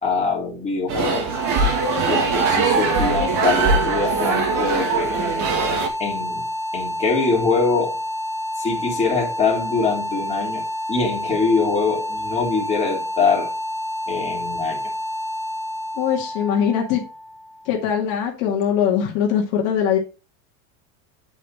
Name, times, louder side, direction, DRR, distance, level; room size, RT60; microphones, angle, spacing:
voice 1, 0.0-1.3 2.0-5.1 6.0-6.4 6.7-8.0 8.6-10.6 10.9-13.5 14.1-14.9, left 4 dB, 15° left, 3.4 m, -23 dB
sound 1, 0.9-5.9, right 4 dB, 50° right, 2.0 m, -21 dB
sound 2, 1.2-18.1, left 1 dB, 5° right, 0.7 m, -29 dB
voice 2, 16.0-17.0 17.7-20.0, left 8 dB, 60° left, 2.2 m, -21 dB
8.9 x 5.0 x 4.3 m
supercardioid pair, 140°, 43 cm